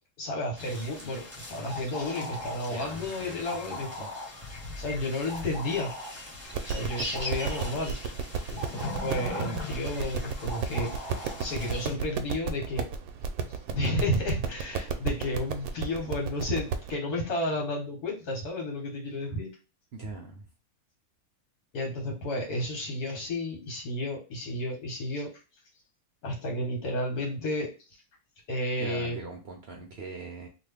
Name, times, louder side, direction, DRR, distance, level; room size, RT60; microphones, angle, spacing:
voice 1, 0.2-4.1 4.8-5.9 6.6-8.0 8.5-10.9 11.4-12.8 13.7-19.5 21.7-25.3 26.2-27.7 28.5-29.2, left 1 dB, 75° left, 0 dB, 1.7 m, -32 dB
sound 1, 0.6-11.9, left 2 dB, 10° right, 0.7 m, -39 dB
voice 2, 2.7-4.1 19.9-20.5 28.8-30.5, right 3 dB, 60° right, 1 dB, 0.7 m, -42 dB
sound 2, 6.5-17.0, right 6 dB, 75° right, 1.0 m, -34 dB
3.0 x 2.4 x 3.4 m, 0.31 s
omnidirectional pair, 1.6 m